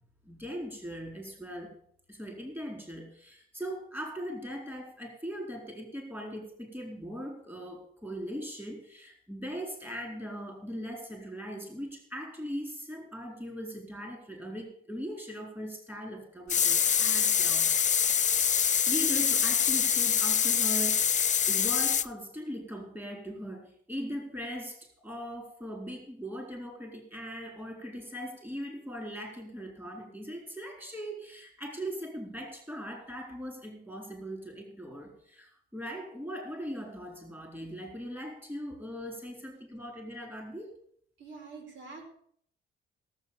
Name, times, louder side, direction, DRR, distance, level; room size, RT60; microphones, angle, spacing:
voice 1, 0.2-1.8 2.1-17.7 18.4-21.1 21.5-40.8, equal, 10° right, 2 dB, 4.4 m, -40 dB
sound 1, 16.5-22.1, left 8 dB, 40° left, 0.6 m, -25 dB
voice 2, 41.2-42.1, right 4 dB, 70° right, 3 dB, 4.7 m, -45 dB
17.0 x 7.8 x 7.1 m, 0.62 s
cardioid pair, 90°, 20 cm